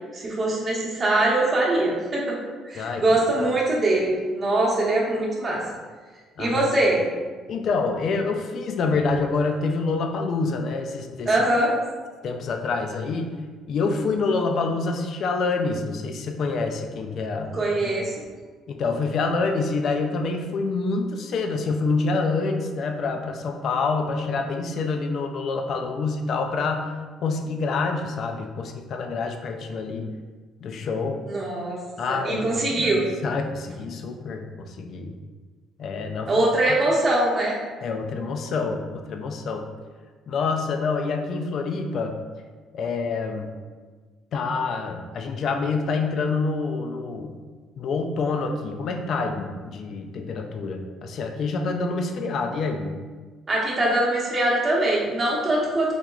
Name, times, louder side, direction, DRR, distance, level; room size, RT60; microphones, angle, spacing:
voice 1, 0.1-2.4 2.6-5.6 6.4-7.0 11.3-11.7 17.5-18.1 31.2-31.8 32.1-33.0 36.3-37.6 53.5-55.9, right 1 dB, 30° right, -4 dB, 0.9 m, -22 dB
voice 2, 7.5-11.3 12.2-13.4 13.7-17.5 17.8-17.9 18.7-26.9 27.2-30.1 30.6-31.2 32.0-33.0 33.2-35.2 35.8-36.4 37.8-39.7 40.3-42.1 42.7-43.5 44.3-47.4 47.8-53.0, left 4 dB, 55° left, 4 dB, 0.3 m, -27 dB
3.6 x 2.8 x 2.3 m, 1.4 s
cardioid pair, 120°, 0 cm